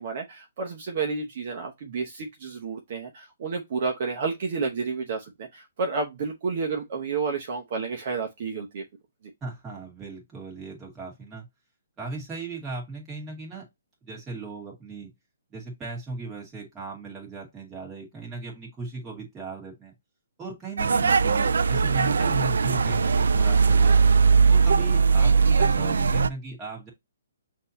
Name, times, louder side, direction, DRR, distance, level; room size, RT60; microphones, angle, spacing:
voice 1, 0.0-8.8, right 4 dB, 40° right, 1.0 m, -30 dB
voice 2, 9.4-11.5 12.0-13.6 14.0-15.1 15.5-19.9 20.4-24.1 24.5-26.9, right 3 dB, 10° right, 1.9 m, -37 dB
sound 1, 20.8-26.3, right 5 dB, 85° right, 0.4 m, -20 dB
6.1 x 2.8 x 2.7 m
hypercardioid pair, 165°, 0 cm